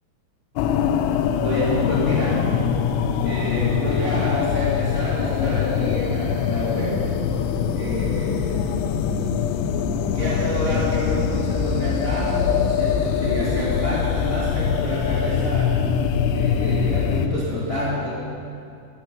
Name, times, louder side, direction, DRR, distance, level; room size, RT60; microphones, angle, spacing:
sound 1, 0.6-17.3, left 7 dB, 80° left, 2.7 m, -23 dB
voice 1, 1.4-2.5 3.2-7.1 7.7-8.6 10.1-15.8 16.3-18.1, equal, 25° left, -7 dB, 1.2 m, -28 dB
14.0 x 12.5 x 5.3 m, 2.4 s
omnidirectional pair, 5.4 m